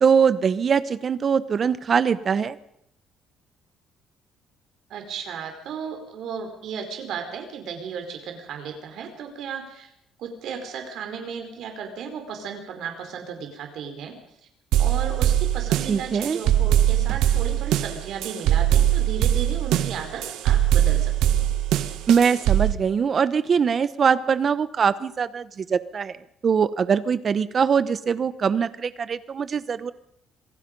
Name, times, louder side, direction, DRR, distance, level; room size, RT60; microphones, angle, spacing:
voice 1, 0.0-2.6 15.9-16.4 22.1-26.2 26.4-29.9, right 6 dB, 35° right, 15 dB, 1.0 m, -22 dB
voice 2, 4.9-9.9 10.2-14.1 14.8-21.5, right 6 dB, 65° right, 4 dB, 4.7 m, -34 dB
sound 1, 14.7-22.7, right 12 dB, 85° right, 1.5 m, -21 dB
26.5 x 19.0 x 5.4 m, 0.73 s
cardioid pair, 150°, 0 cm